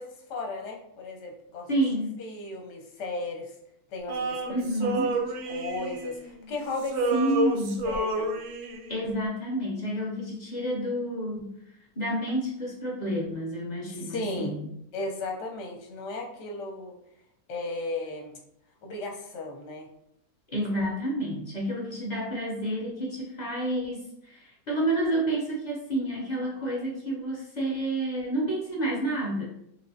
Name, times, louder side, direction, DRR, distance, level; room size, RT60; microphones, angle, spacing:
voice 1, 0.0-1.7 2.2-3.5 3.9-5.0 5.5-7.4 7.8-8.3 13.9-14.6 14.9-17.0 17.5-18.4 18.8-19.9, left 2 dB, 60° left, 0 dB, 0.9 m, -35 dB
voice 2, 1.7-2.1 4.5-5.1 7.1-7.8 8.9-11.5 12.0-14.7 20.5-29.4, right 1 dB, 45° left, -2 dB, 0.6 m, -29 dB
Male singing, 4.1-6.5 6.8-9.0, right 1 dB, 70° right, 0.8 m, -30 dB
3.3 x 3.0 x 2.7 m, 0.75 s
omnidirectional pair, 1.6 m